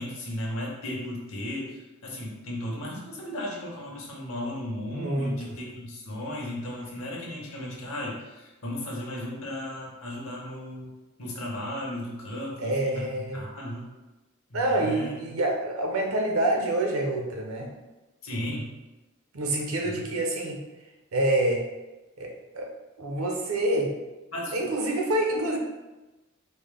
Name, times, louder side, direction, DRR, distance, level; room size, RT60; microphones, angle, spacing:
voice 1, 0.0-10.9 11.2-13.9 14.5-15.2 18.2-18.7 19.8-20.0 24.3-24.6, left 1 dB, 70° left, -3 dB, 1.0 m, -35 dB
voice 2, 4.9-5.3 12.6-13.4 14.5-17.7 19.3-20.6 21.1-21.6 22.2-22.7 23.0-23.9 24.5-25.6, right 1 dB, 75° right, 1 dB, 0.7 m, -27 dB
4.2 x 2.0 x 3.4 m, 1.1 s
head